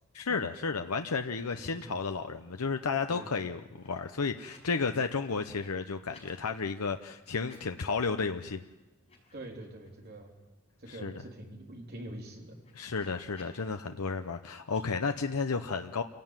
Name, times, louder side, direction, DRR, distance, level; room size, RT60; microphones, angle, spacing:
voice 1, 0.1-8.6 10.9-11.1 12.7-16.0, left 4 dB, 90° left, 7 dB, 0.8 m, -32 dB
sound 1, 1.3-1.4 1.7-2.3 2.7-4.7 5.0-6.4 7.3-8.1 8.5-8.6 9.0-10.3 10.7-10.8 11.0-13.7 14.6-14.8, left 3 dB, 30° left, 6.5 m, -61 dB
voice 2, 1.6-2.0 3.1-3.3 9.3-10.3 10.8-12.6, right 1 dB, 45° right, 1 dB, 3.6 m, -45 dB
27.5 x 17.0 x 9.0 m, 1.2 s
head